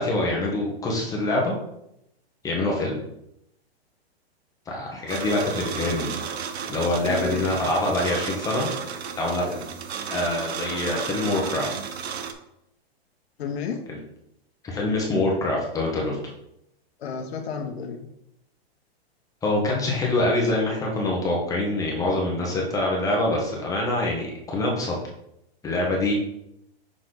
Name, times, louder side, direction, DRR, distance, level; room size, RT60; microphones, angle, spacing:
voice 1, 0.0-1.5 2.4-3.0 4.7-6.1 6.7-8.7 9.2-9.7 10.1-11.7 13.9-14.0 14.6-16.2 19.4-24.9 25.6-26.1, left 2 dB, 10° left, -2 dB, 1.4 m, -25 dB
sound 1, 5.1-12.3, right 7 dB, 80° right, 0.9 m, -33 dB
voice 2, 7.0-7.7 13.4-13.8 17.0-18.1, left 6 dB, 80° left, 3 dB, 1.1 m, -31 dB
6.4 x 4.6 x 3.9 m, 0.79 s
hypercardioid pair, 155°, 31 cm